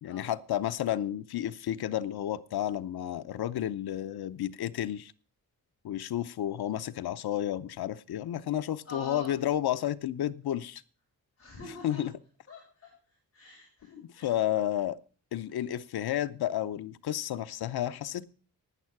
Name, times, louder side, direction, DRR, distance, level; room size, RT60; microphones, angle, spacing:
voice 1, 0.0-5.1 5.8-10.8 11.8-12.1 13.9-15.0 15.3-18.2, left 12 dB, 80° left, 0.7 m, -31 dB
voice 2, 8.8-9.3 11.4-12.0 12.5-14.4, left 2 dB, 35° left, 5.8 m, -46 dB
11.0 x 9.3 x 5.9 m
wide cardioid pair, 180°, 37 cm